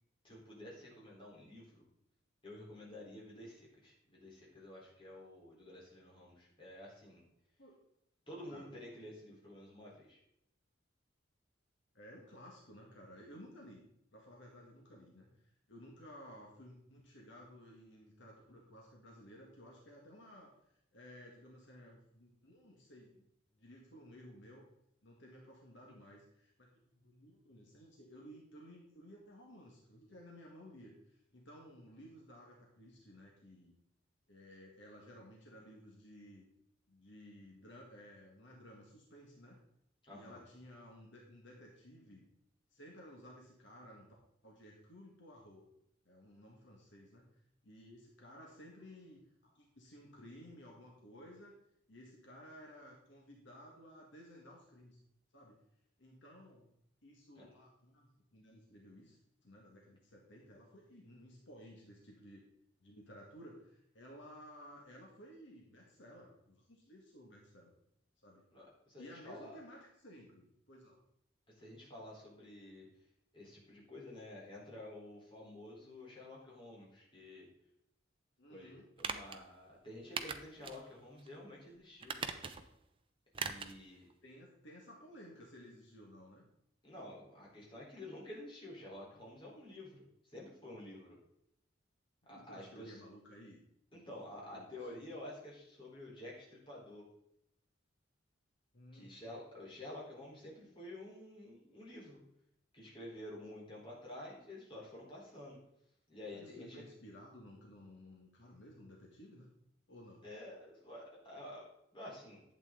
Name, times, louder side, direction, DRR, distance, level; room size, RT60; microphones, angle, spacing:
voice 1, 0.2-1.9 2.4-7.2 8.3-10.2 40.1-40.4 57.4-57.5 68.5-69.6 71.6-72.9 73.3-77.5 78.5-82.2 83.3-84.1 86.8-91.2 92.3-93.0 93.9-97.0 98.9-102.2 102.7-105.6 106.1-106.8 110.2-111.6 111.9-112.4, left 1 dB, 25° left, -4 dB, 3.9 m, -50 dB
voice 2, 11.9-23.3 23.5-24.7 25.0-33.7 34.3-36.5 36.9-39.6 40.1-42.3 42.7-44.1 44.4-45.7 46.1-51.6 51.9-55.0 55.3-55.6 56.0-56.7 57.0-62.5 62.8-67.7 68.2-68.4 69.0-71.0 78.4-78.8 84.2-86.4 92.2-93.6 93.9-95.0 98.7-99.1 106.3-109.5 109.9-110.2, equal, 70° left, -1 dB, 2.0 m, -56 dB
sound 1, 79.0-79.4 80.2-80.8 81.2-81.3 82.0-82.8 83.3-83.8 84.1-84.2, right 5 dB, 30° right, 0.7 m, -40 dB
11.5 x 8.3 x 3.9 m, 0.79 s
head